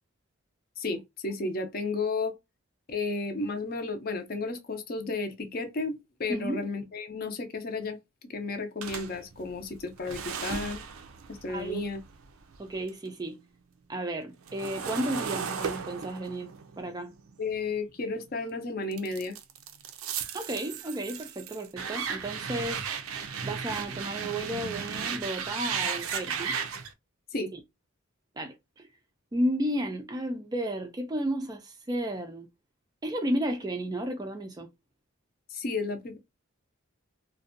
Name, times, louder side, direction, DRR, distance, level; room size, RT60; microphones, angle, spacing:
voice 1, 0.8-2.3 2.9-10.8 11.3-12.0 17.4-19.3 27.3-27.5 35.5-36.2, left 3 dB, 45° left, 0.5 m, -33 dB
voice 2, 6.3-6.7 11.5-11.9 12.6-13.4 13.9-16.5 16.8-17.1 20.3-22.8 23.4-26.6 27.5-27.6 28.4-28.9 29.3-32.5 33.0-34.7, right 1 dB, 20° right, 0.3 m, -33 dB
sound 1, 8.8-13.1 13.4-18.3 18.9-26.9, right 6 dB, 80° right, 0.4 m, -36 dB
2.5 x 2.2 x 2.5 m
head